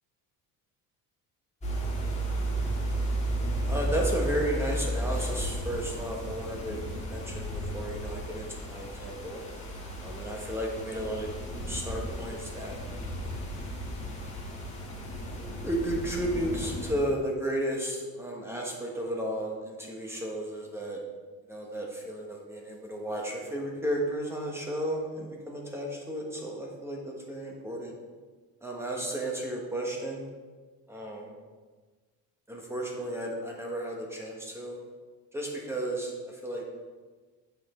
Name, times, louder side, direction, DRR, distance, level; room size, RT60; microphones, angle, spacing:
sound 1, 1.6-16.9, right 1 dB, 15° left, 1.6 m, -34 dB
voice 1, 3.7-9.4 10.0-11.3 11.7-12.8 15.6-21.0 21.5-27.9 28.6-30.3 30.9-31.4 32.5-34.8 35.3-36.6, right 1 dB, 5° right, -1 dB, 1.1 m, -33 dB
7.9 x 5.8 x 4.3 m, 1.4 s
cardioid pair, 160°, 39 cm